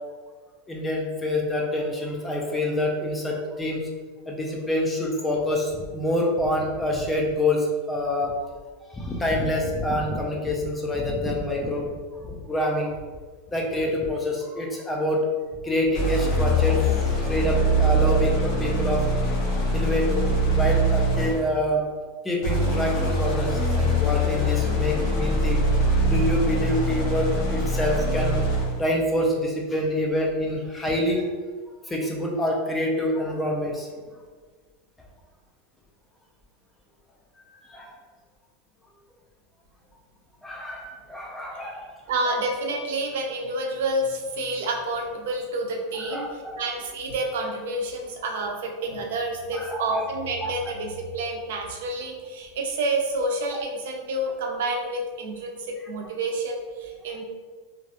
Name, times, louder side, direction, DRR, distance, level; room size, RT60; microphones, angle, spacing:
voice 1, 0.7-3.8 4.3-8.3 8.9-11.9 12.2-12.9 13.5-15.3 15.6-16.8 17.3-19.0 19.7-21.8 22.2-31.3 31.9-33.9 37.6-37.9 40.4-41.9 42.3-42.4 45.9-46.6 49.5-50.0 50.4-50.5 53.5-53.6, left 1 dB, 10° left, -1 dB, 0.4 m, -26 dB
sound 1, 15.9-21.5 22.4-28.8, right 1 dB, 45° left, 0.7 m, -23 dB
voice 2, 42.1-46.3 46.6-57.2, right 2 dB, 80° right, 2 dB, 0.4 m, -29 dB
2.3 x 2.1 x 2.7 m, 1.4 s
supercardioid pair, 155°, 0 cm